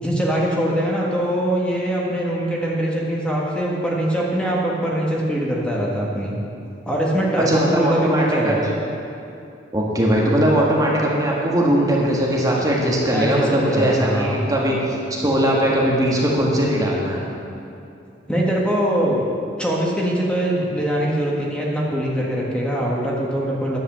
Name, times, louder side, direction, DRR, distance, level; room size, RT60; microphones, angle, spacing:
voice 1, 0.0-6.4 6.8-8.6 13.1-14.4 18.3-19.3 19.6-23.8, right 1 dB, 5° left, -4 dB, 1.6 m, -22 dB
voice 2, 7.4-8.6 9.7-17.2, right 1 dB, 20° right, -3 dB, 1.6 m, -20 dB
10.5 x 8.0 x 7.5 m, 2.7 s
head